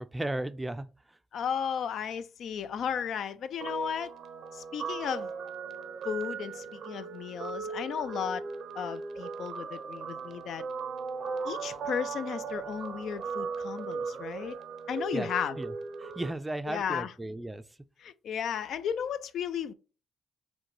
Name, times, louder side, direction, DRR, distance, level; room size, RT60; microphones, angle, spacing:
voice 1, 0.0-1.2 15.1-15.3 15.6-15.7 16.0-17.6, right 1 dB, 15° right, 0.4 m, -35 dB
voice 2, 1.3-4.1 4.5-5.3 6.0-8.4 8.8-10.6 11.5-14.5 14.9-15.6 16.7-17.1 18.0-19.7, left 8 dB, 70° left, 0.4 m, -34 dB
Guitar, 3.6-16.3, right 5 dB, 70° right, 0.6 m, -38 dB
6.2 x 2.2 x 3.1 m
cardioid pair, 90°, 0 cm